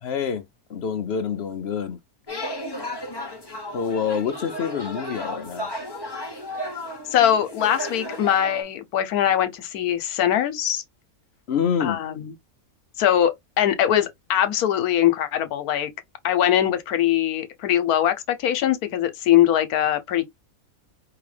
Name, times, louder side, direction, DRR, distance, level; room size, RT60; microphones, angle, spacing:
voice 1, 0.0-0.4 0.7-2.0 3.7-5.7 11.5-12.0, left 7 dB, 60° left, 0.7 m, -26 dB
sound 1, 2.3-8.6, left 1 dB, 20° left, 0.8 m, -34 dB
voice 2, 7.1-10.8 11.8-12.3 13.0-15.9 16.2-20.3, left 11 dB, 80° left, 1.2 m, -22 dB
4.8 x 2.7 x 3.2 m
omnidirectional pair, 1.6 m